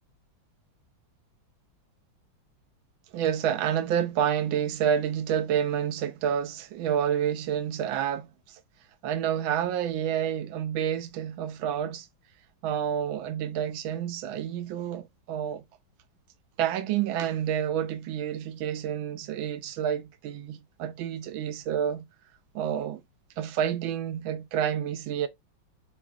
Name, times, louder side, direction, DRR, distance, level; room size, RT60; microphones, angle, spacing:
voice 1, 3.1-8.6 9.0-12.1 12.6-15.6 16.6-22.0 22.5-23.0 23.4-25.3, right 9 dB, 85° right, 1.4 m, -29 dB
5.1 x 2.3 x 2.4 m
omnidirectional pair, 2.1 m